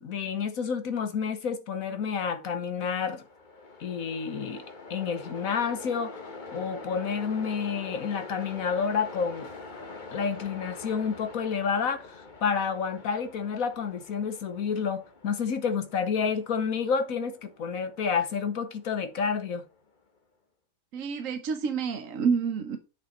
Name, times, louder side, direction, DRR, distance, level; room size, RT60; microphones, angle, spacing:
voice 1, 0.0-3.2 3.8-4.6 4.9-6.2 6.5-9.5 10.1-19.6, left 6 dB, 55° left, 1.3 m, -29 dB
Train, 2.7-19.9, left 3 dB, 30° left, 1.0 m, -45 dB
voice 2, 20.9-22.8, right 6 dB, 55° right, 1.1 m, -28 dB
8.2 x 6.6 x 4.2 m
omnidirectional pair, 2.0 m